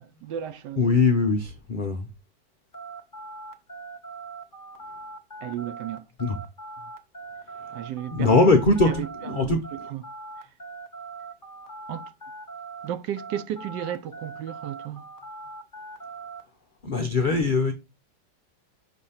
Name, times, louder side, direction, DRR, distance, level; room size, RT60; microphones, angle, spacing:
voice 1, 0.0-0.9 5.4-6.1 7.7-8.4 8.9-9.6 9.9-10.0 11.9-12.0 12.8-15.1, right 10 dB, 75° right, 1.2 m, -34 dB
voice 2, 0.8-2.1 6.2-6.4 7.6-7.8 8.1-9.9 16.8-17.7, left 3 dB, 70° left, 0.4 m, -22 dB
sound 1, 2.7-12.9 13.2-16.4, right 3 dB, 20° left, 0.6 m, -41 dB
6.3 x 3.3 x 5.6 m
omnidirectional pair, 1.9 m